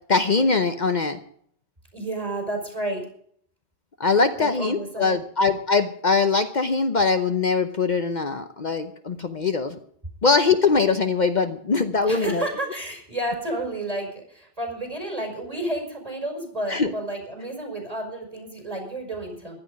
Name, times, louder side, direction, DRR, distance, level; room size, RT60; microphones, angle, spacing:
voice 1, 0.1-1.2 4.0-9.8 10.2-12.4 16.7-16.9, left 4 dB, 50° left, 8 dB, 0.9 m, -22 dB
voice 2, 1.9-3.0 4.4-5.2 12.1-19.6, right 1 dB, 35° right, 2 dB, 5.3 m, -31 dB
15.5 x 12.0 x 5.2 m, 0.63 s
omnidirectional pair, 1.0 m